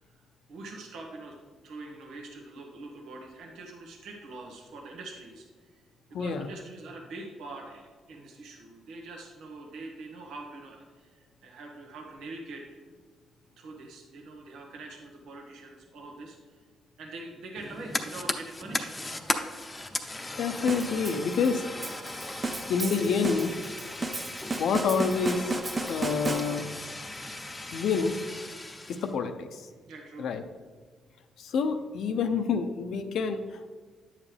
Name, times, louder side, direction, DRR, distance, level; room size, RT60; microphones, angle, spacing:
voice 1, 0.5-1.3 1.6-5.8 6.2-12.8 13.6-16.6 17.0-19.0 29.9-30.3, right 2 dB, 80° right, 1 dB, 1.3 m, -44 dB
voice 2, 6.1-6.5 20.4-21.6 22.7-23.6 24.6-25.5 25.8-26.6 27.7-28.2 28.9-29.7 30.2-30.4 31.4-33.7, left 5 dB, 70° left, 8 dB, 0.7 m, -28 dB
Fire, 17.6-29.1, left 2 dB, 15° left, 0.8 m, -37 dB
sound 1, 20.7-26.9, right 3 dB, 30° right, 0.7 m, -34 dB
10.5 x 7.4 x 3.4 m, 1.5 s
cardioid pair, 90°, 0 cm